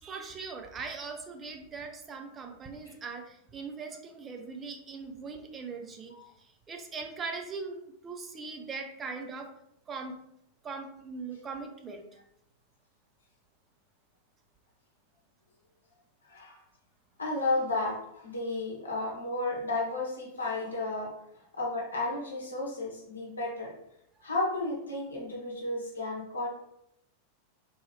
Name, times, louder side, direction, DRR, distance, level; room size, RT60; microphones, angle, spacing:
voice 1, 0.0-6.1 6.4-9.5 9.9-10.1 10.6-12.0, right 4 dB, 20° right, 4 dB, 0.5 m, -40 dB
voice 2, 16.2-16.6 17.2-21.1 21.5-23.7 24.2-26.5, left 2 dB, 75° left, -3 dB, 0.8 m, -33 dB
3.8 x 2.7 x 3.0 m, 0.77 s
figure-of-eight pair, 90°, 0 cm